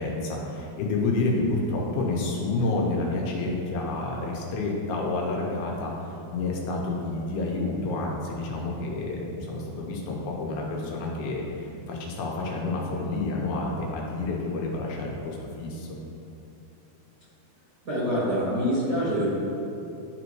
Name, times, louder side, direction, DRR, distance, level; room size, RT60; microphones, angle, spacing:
voice 1, 0.0-15.9, left 2 dB, 80° left, -2 dB, 2.7 m, -29 dB
voice 2, 17.8-19.3, equal, 75° right, -10 dB, 0.9 m, -25 dB
11.5 x 4.0 x 3.1 m, 2.7 s
omnidirectional pair, 4.6 m